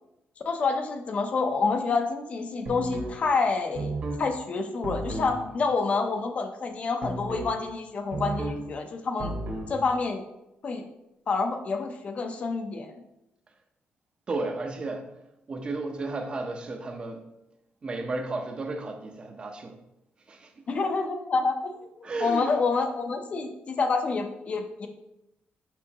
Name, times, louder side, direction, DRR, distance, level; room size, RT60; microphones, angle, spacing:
voice 1, 0.4-3.9 4.2-9.3 9.7-10.2 10.6-10.8 11.3-12.9 20.7-24.9, left 4 dB, 40° left, 6 dB, 0.6 m, -28 dB
sound 1, 2.6-3.2 3.7-4.2 4.8-5.4 7.0-7.5 8.1-8.6 9.2-9.7, right 2 dB, 45° right, 1.4 m, -33 dB
voice 2, 14.3-15.0 15.5-17.2 17.8-19.8 20.3-20.4 22.0-22.5, right 3 dB, 30° right, 4 dB, 0.7 m, -33 dB
6.0 x 5.6 x 2.9 m, 0.88 s
wide cardioid pair, 170°, 4 cm